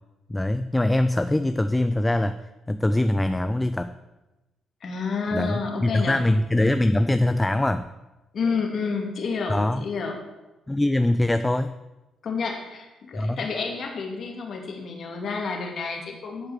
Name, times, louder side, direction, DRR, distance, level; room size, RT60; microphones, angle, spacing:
voice 1, 0.3-2.4 2.7-3.9 5.3-7.9 9.5-9.9 10.7-11.7 13.1-13.4, left 1 dB, 10° left, 11 dB, 0.4 m, -23 dB
voice 2, 4.8-6.2 8.3-10.1 12.2-16.5, left 4 dB, 55° left, 2 dB, 2.2 m, -29 dB
10.5 x 4.9 x 7.3 m, 1.1 s
cardioid pair, 90°, 0 cm